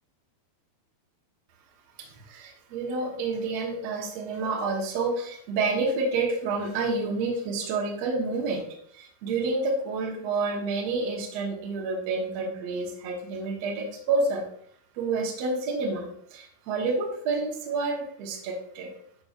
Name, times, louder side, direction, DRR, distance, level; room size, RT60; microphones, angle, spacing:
voice 1, 2.0-8.6 8.9-14.4 14.9-18.9, right 3 dB, 60° right, -1 dB, 1.8 m, -29 dB
11.5 x 4.3 x 2.5 m, 0.65 s
omnidirectional pair, 4.3 m